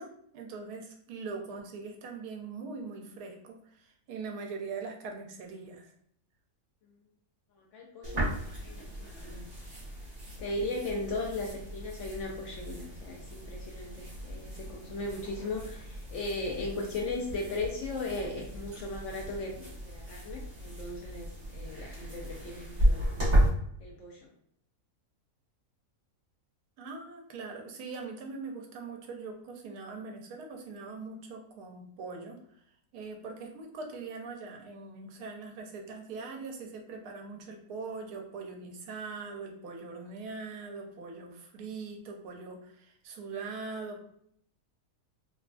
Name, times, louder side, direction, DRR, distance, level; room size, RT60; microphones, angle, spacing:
voice 1, 0.0-5.9 26.8-32.4 32.9-44.0, right 4 dB, 85° right, 2 dB, 1.1 m, -42 dB
voice 2, 7.6-9.5 10.4-23.2 23.8-24.3, left 2 dB, 70° left, 0 dB, 0.7 m, -37 dB
sound 1, 8.0-23.5, equal, 30° right, 1.0 m, -34 dB
3.1 x 2.2 x 2.4 m, 0.69 s
omnidirectional pair, 1.6 m